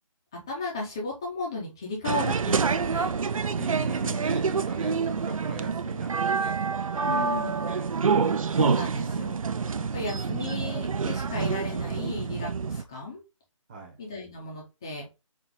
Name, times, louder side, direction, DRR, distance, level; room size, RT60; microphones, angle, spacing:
voice 1, 0.3-3.2 7.1-7.7 8.5-9.4 9.9-13.2 14.0-15.1, left 3 dB, 10° left, -2 dB, 0.5 m, -35 dB
sound 1, 2.0-12.8, right 5 dB, 75° right, 0.5 m, -27 dB
voice 2, 3.5-7.3 7.6-7.9 13.7-14.0, right 3 dB, 15° right, 1 dB, 0.9 m, -38 dB
5.9 x 2.4 x 3.5 m, 0.26 s
hypercardioid pair, 170°, 17 cm